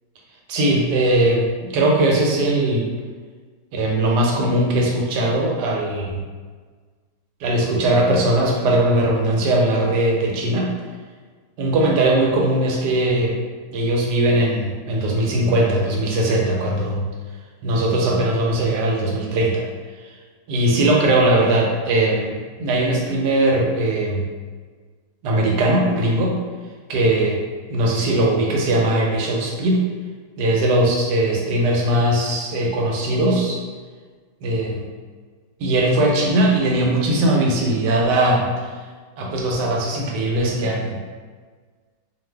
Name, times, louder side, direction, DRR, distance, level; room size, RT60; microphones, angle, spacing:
voice 1, 0.5-2.9 3.7-6.2 7.4-10.7 11.6-13.3 13.7-17.1 17.6-19.6 20.5-24.3 25.2-26.4 26.9-27.4 27.7-29.8 30.4-33.6 34.4-34.9 35.6-38.5 39.2-41.0, right 1 dB, 90° right, -1 dB, 1.2 m, -19 dB
2.5 x 2.5 x 3.3 m, 1.5 s
omnidirectional pair, 1.8 m